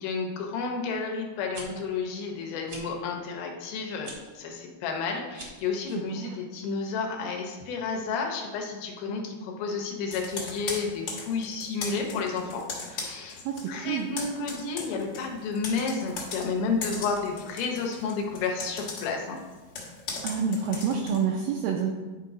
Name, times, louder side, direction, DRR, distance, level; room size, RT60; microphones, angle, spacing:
voice 1, 0.0-13.4 13.7-19.4, left 4 dB, 75° left, 2 dB, 2.6 m, -31 dB
sound 1, 1.3-1.6 2.6-2.8 4.0-4.2 5.3-5.7, right 2 dB, 55° right, 1.4 m, -42 dB
Computer keyboard, 10.1-13.7 14.0-21.2, left 4 dB, 55° left, 1.6 m, -38 dB
voice 2, 13.5-14.1 20.2-21.9, right 6 dB, 80° right, 1 dB, 2.0 m, -28 dB
10.5 x 3.8 x 4.8 m, 1.3 s
omnidirectional pair, 4.6 m